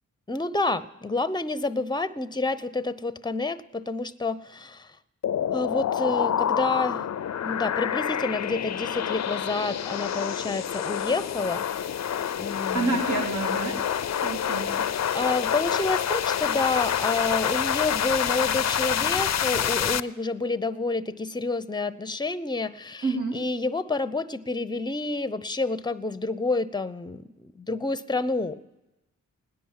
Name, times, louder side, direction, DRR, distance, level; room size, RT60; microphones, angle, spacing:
voice 1, 0.3-4.9 5.5-7.0 7.4-11.6 12.4-13.0 15.1-28.6, left 3 dB, 15° left, 14 dB, 0.7 m, -29 dB
sound 1, 5.2-20.0, left 9 dB, 50° left, 0.5 m, -27 dB
voice 2, 12.7-13.7 14.2-14.6 23.0-23.3, right 3 dB, 60° right, 0 dB, 3.3 m, -28 dB
17.5 x 10.0 x 7.4 m, 1.0 s
cardioid pair, 65°, 34 cm